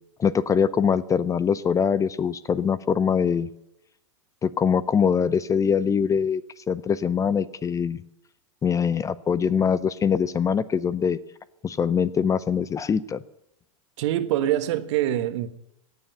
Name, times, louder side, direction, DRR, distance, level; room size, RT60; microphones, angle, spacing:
voice 1, 0.2-3.5 4.4-6.4 6.7-8.0 8.6-11.2 11.6-13.2, left 7 dB, 20° left, 0.6 m, -23 dB
voice 2, 14.0-15.5, right 12 dB, 60° right, 1.4 m, -24 dB
17.5 x 7.2 x 9.7 m
hypercardioid pair, 100°, 17 cm